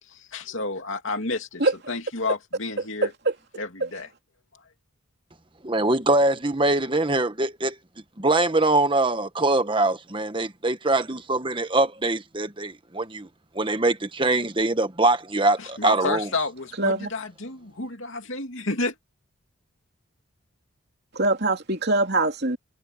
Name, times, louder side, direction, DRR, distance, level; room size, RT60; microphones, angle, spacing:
voice 1, 0.0-3.1 3.5-4.1 15.6-19.0, left 3 dB, 60° left, 2.9 m, -30 dB
voice 2, 5.6-7.7 8.2-13.3 13.5-16.3, right 2 dB, 25° right, 1.3 m, -23 dB
voice 3, 16.8-17.1 21.1-22.6, right 2 dB, 50° right, 3.1 m, -23 dB
head